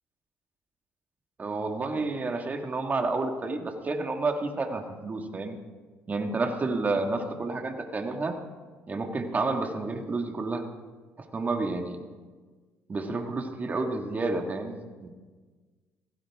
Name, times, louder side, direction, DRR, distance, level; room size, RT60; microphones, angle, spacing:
voice 1, 1.4-5.6 6.1-8.3 8.9-10.6 11.3-12.0 12.9-15.1, right 3 dB, 30° right, 4 dB, 1.9 m, -30 dB
17.0 x 15.5 x 3.6 m, 1.4 s
cardioid pair, 85°, 6 cm